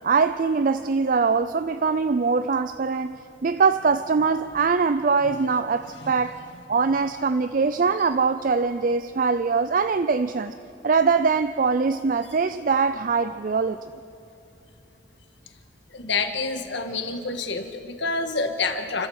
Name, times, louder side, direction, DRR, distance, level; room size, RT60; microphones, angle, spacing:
voice 1, 0.0-6.4 6.7-10.5 10.8-13.8, right 5 dB, 45° right, 12 dB, 0.4 m, -22 dB
voice 2, 15.9-19.1, left 4 dB, 70° left, 7 dB, 1.6 m, -28 dB
29.0 x 13.0 x 7.9 m, 2.7 s
head